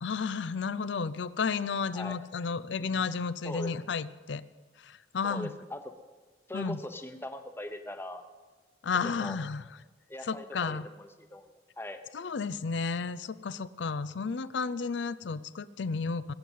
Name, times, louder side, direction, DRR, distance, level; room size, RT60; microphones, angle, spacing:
voice 1, 0.0-4.4 4.8-5.5 6.5-6.8 8.8-9.6 10.3-10.9 12.1-16.3, left 5 dB, 75° left, 16 dB, 0.5 m, -32 dB
voice 2, 3.4-3.9 5.2-5.8 6.5-8.2 9.0-9.4 10.1-12.0, left 1 dB, 10° left, 7 dB, 0.9 m, -41 dB
21.0 x 8.5 x 5.6 m, 1.3 s
head